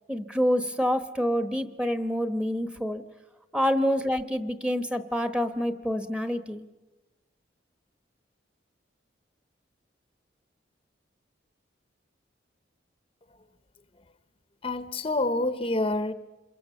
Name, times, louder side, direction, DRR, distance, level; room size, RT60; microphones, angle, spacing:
voice 1, 0.1-3.0 3.5-6.6, equal, 5° right, 1.1 m, -27 dB
voice 2, 14.6-16.1, left 2 dB, 30° left, 0.8 m, -27 dB
27.5 x 22.5 x 7.0 m
head